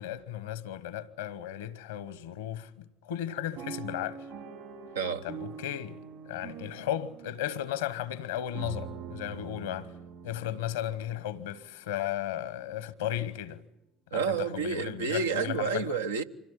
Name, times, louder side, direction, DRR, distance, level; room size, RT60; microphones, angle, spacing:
voice 1, 0.0-4.2 5.2-9.9 10.2-13.6 14.1-15.8, left 11 dB, 80° left, 1.0 m, -35 dB
sound 1, 3.5-11.7 12.3-12.4 12.6-12.9, right 7 dB, 70° right, 4.5 m, -44 dB
voice 2, 4.9-5.3 14.1-16.2, right 5 dB, 85° right, 0.8 m, -30 dB
25.0 x 17.0 x 9.9 m
hypercardioid pair, 60°, 0 cm